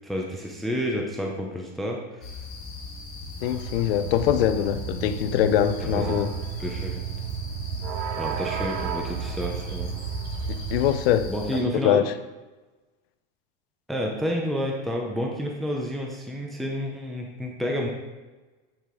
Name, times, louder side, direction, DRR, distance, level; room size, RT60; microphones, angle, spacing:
voice 1, 0.0-2.3 5.8-6.2 6.6-7.0 8.2-9.9 11.3-12.0 13.9-17.9, equal, ahead, 0.5 m, -30 dB
sound 1, 2.2-11.6, left 4 dB, 30° left, 1.6 m, -39 dB
voice 2, 3.4-6.3 10.5-12.0, left 10 dB, 75° left, 0.7 m, -23 dB
sound 2, 3.4-11.0, right 9 dB, 80° right, 0.7 m, -33 dB
9.4 x 5.1 x 3.7 m
supercardioid pair, 165°, 30 cm